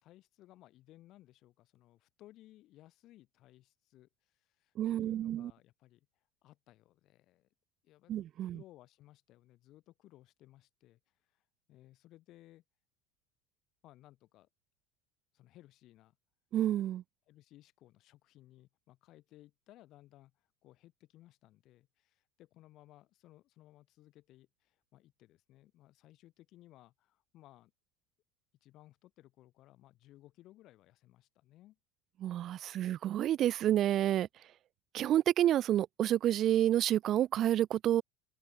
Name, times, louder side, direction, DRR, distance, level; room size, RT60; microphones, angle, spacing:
voice 1, 0.0-6.1 6.4-7.5 7.8-8.1 8.4-11.0 11.3-11.4 11.7-12.6 13.8-14.5 15.3-16.2 17.3-27.7 28.6-31.8, left 15 dB, 55° left, 3.6 m, -60 dB
voice 2, 4.8-5.5 8.1-8.6 16.5-17.0 32.2-34.3 34.9-38.0, right 12 dB, 50° right, 0.4 m, -29 dB
hypercardioid pair, 80°, 0 cm